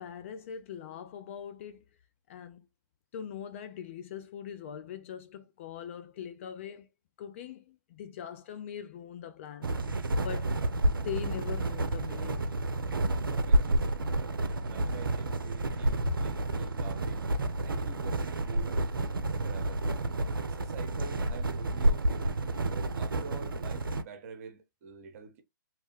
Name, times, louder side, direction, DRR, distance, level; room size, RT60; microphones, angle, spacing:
voice 1, 0.0-1.8 2.3-2.7 3.1-6.9 7.2-10.6 10.9-12.5, left 9 dB, 35° left, 0.3 m, -42 dB
sound 1, 9.6-24.0, right 1 dB, 85° right, 0.4 m, -30 dB
voice 2, 13.3-14.1 14.5-17.3 17.6-18.9 19.4-19.8 20.4-22.6 22.9-25.4, right 6 dB, 40° right, 0.8 m, -47 dB
2.9 x 2.1 x 3.0 m
figure-of-eight pair, 125°, 11 cm